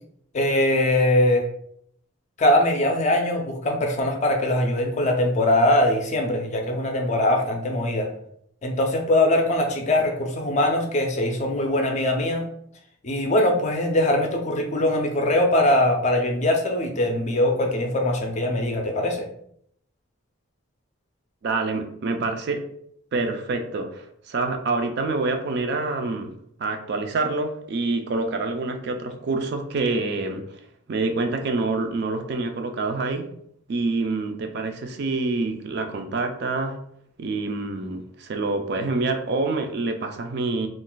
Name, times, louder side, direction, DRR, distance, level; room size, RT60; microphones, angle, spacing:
voice 1, 0.3-1.4 2.4-8.1 8.6-12.4 13.0-19.3, left 1 dB, 35° left, 3 dB, 0.4 m, -22 dB
voice 2, 21.4-22.6 23.1-26.3 26.6-30.4 30.9-33.3 33.7-36.8 37.2-40.7, right 3 dB, 50° right, 5 dB, 0.4 m, -26 dB
2.4 x 2.2 x 3.8 m, 0.70 s
head